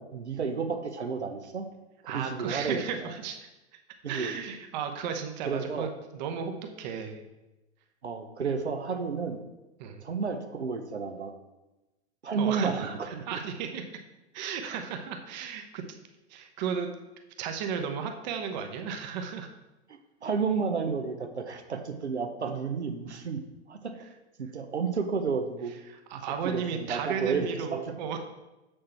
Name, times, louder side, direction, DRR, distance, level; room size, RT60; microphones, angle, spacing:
voice 1, 0.0-1.7 2.0-3.1 4.0-4.3 5.5-5.9 8.0-9.4 10.0-11.3 12.2-13.4 19.9-23.4 23.7-24.0 24.4-25.7 26.1-27.9, right 5 dB, 75° right, 6 dB, 0.9 m, -32 dB
voice 2, 2.1-3.5 4.1-6.5 6.8-7.2 9.8-10.0 12.4-13.8 14.3-15.8 16.3-16.9 17.4-19.5 25.9-28.2, right 7 dB, 40° right, 5 dB, 1.0 m, -34 dB
7.4 x 6.7 x 4.4 m, 1.0 s
figure-of-eight pair, 100°, 34 cm